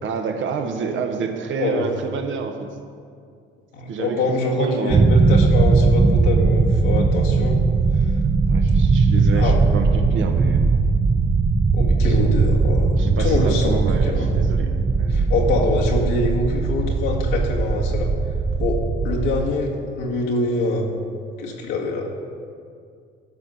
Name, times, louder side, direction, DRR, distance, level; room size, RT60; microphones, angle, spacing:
voice 1, 0.0-2.7 3.9-4.2 4.5-5.1 8.5-10.6 12.0-12.2 13.0-15.3, right 5 dB, 65° right, 5 dB, 1.2 m, -28 dB
voice 2, 3.7-7.6 9.3-9.6 11.7-14.3 15.1-18.1 18.5-20.9 21.4-22.1, left 2 dB, 90° left, -2 dB, 1.9 m, -24 dB
sound 1, 4.9-19.4, right 4 dB, 25° right, 0.6 m, -19 dB
13.0 x 5.5 x 6.3 m, 2.2 s
cardioid pair, 85°, 21 cm